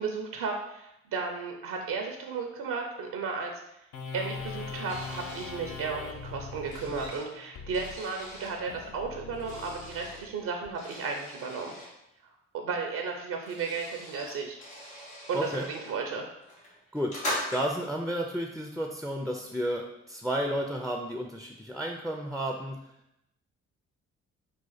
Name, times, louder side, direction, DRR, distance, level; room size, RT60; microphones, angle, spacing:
voice 1, 0.0-3.6 4.1-11.7 12.5-14.6 15.3-16.2, right 4 dB, 65° right, 3 dB, 0.6 m, -34 dB
sound 1, 3.9-10.7, left 4 dB, 55° left, 0.6 m, -42 dB
sound 2, 4.8-5.5 6.2-8.5 9.3-10.2 10.7-11.9 12.9-13.0 13.2-15.9 16.4-17.9, equal, 90° left, 1.4 m, -40 dB
voice 2, 15.3-15.7 16.9-17.2 17.5-22.9, equal, ahead, 2 dB, 0.4 m, -32 dB
4.2 x 2.4 x 3.9 m, 0.85 s
hypercardioid pair, 45°, 35 cm